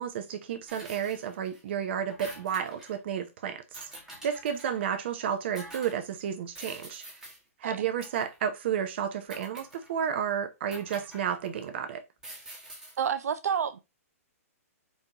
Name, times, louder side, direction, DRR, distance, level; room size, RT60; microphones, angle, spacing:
voice 1, 0.0-3.8 4.2-7.0 7.6-12.0, right 8 dB, 45° right, 0.8 m, -32 dB
sound 1, 0.7-1.6 1.9-3.0 3.7-4.9 5.6-6.0 6.6-7.4 8.0-8.4 9.3-10.1 10.7-11.7 12.2-13.1, right 1 dB, 5° right, 1.1 m, -47 dB
voice 2, 13.0-13.8, right 7 dB, 80° right, 0.7 m, -29 dB
4.2 x 3.7 x 3.0 m
hypercardioid pair, 160°, 8 cm